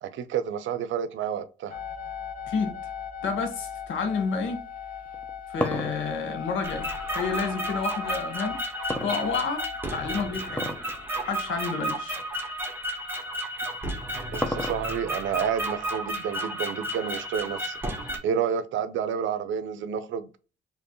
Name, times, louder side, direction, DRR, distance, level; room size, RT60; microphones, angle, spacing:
voice 1, 0.0-1.8 14.3-17.8 18.2-20.3, right 8 dB, 75° right, 0.6 m, -30 dB
sound 1, 1.7-11.1 11.8-11.9 12.0-12.1 13.7-16.5 16.8-18.2, left 8 dB, 45° left, 1.2 m, -39 dB
voice 2, 3.2-4.6 5.5-8.6 9.0-9.6 9.9-10.7 11.2-12.2, left 5 dB, 75° left, 1.2 m, -30 dB
sound 2, 5.1-7.5 8.9-9.8 10.5-10.9 11.3-11.4 12.1-12.2 13.6-15.1, left 1 dB, 5° left, 0.6 m, -32 dB
sound 3, 6.6-18.2, right 1 dB, 10° right, 1.2 m, -33 dB
4.4 x 2.9 x 3.0 m
cardioid pair, 90°, 20 cm